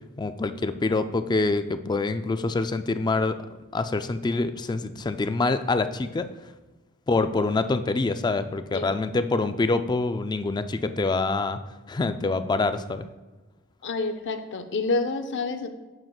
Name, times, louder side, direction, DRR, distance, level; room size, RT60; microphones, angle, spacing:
voice 1, 0.2-3.4 3.7-6.3 7.1-11.6 11.9-13.0, left 3 dB, 20° left, 10 dB, 0.3 m, -25 dB
voice 2, 13.8-15.7, left 3 dB, 60° left, 8 dB, 0.6 m, -28 dB
9.2 x 6.7 x 2.3 m, 1.2 s
head